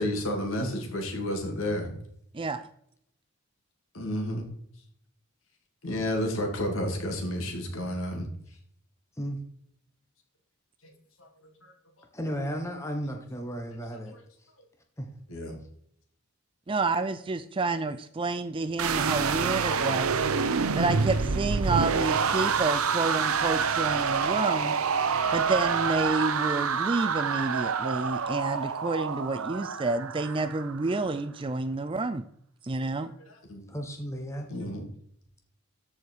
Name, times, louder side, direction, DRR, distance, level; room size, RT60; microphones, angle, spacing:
voice 1, 0.0-2.0 3.9-4.5 5.8-8.3 11.2-11.3 11.6-11.7 14.1-14.2 15.3-15.6 33.5-33.6 34.5-34.9, left 1 dB, 65° left, 3 dB, 2.3 m, -31 dB
voice 2, 2.3-2.7 16.7-24.7 25.3-32.2 32.6-33.1, right 3 dB, 25° right, 12 dB, 0.4 m, -29 dB
voice 3, 12.1-14.2 15.0-15.1 33.7-34.5, equal, 15° left, 3 dB, 1.1 m, -34 dB
sound 1, 18.8-30.8, right 5 dB, 75° right, 0.7 m, -27 dB
13.5 x 4.9 x 4.6 m, 0.69 s
head